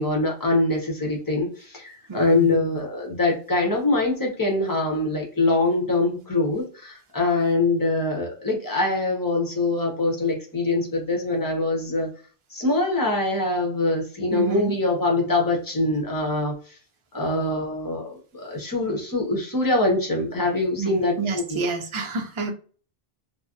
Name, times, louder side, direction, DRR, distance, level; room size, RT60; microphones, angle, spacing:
voice 1, 0.0-12.1 12.5-16.5 17.1-21.6, left 2 dB, 25° left, 0 dB, 0.7 m, -24 dB
voice 2, 2.1-2.6 14.3-14.8 20.8-22.5, right 3 dB, 40° right, 3 dB, 0.4 m, -29 dB
2.5 x 2.1 x 2.4 m, 0.40 s
omnidirectional pair, 1.0 m